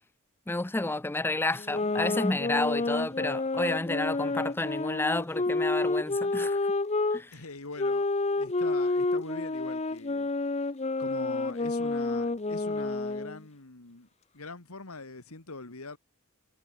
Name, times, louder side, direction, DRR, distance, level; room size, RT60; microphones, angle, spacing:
voice 1, 0.5-6.6 7.1-7.3, left 2 dB, 10° left, 0.5 m, -30 dB
sound 1, 1.6-7.2 7.8-13.4, left 3 dB, 30° left, 0.8 m, -29 dB
voice 2, 7.3-8.1 8.4-10.3 11.0-14.1 14.3-16.0, left 3 dB, 80° left, 2.2 m, -42 dB
head